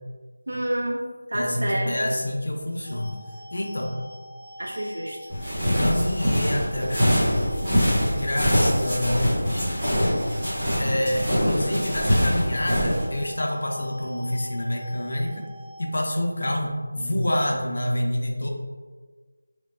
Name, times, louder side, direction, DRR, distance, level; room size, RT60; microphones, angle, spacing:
voice 1, 0.5-2.0 4.6-5.2, right 1 dB, 75° right, -1 dB, 0.4 m, -28 dB
voice 2, 1.3-3.2 3.5-4.0 5.7-7.5 8.1-9.7 10.8-15.5 15.8-18.5, left 1 dB, 60° left, 1 dB, 0.6 m, -27 dB
sound 1, 2.8-15.9, left 1 dB, 25° left, 1.1 m, -43 dB
sound 2, 5.3-13.0, equal, 10° right, 1.2 m, -23 dB
3.5 x 2.8 x 2.5 m, 1.5 s
figure-of-eight pair, 175°, 0 cm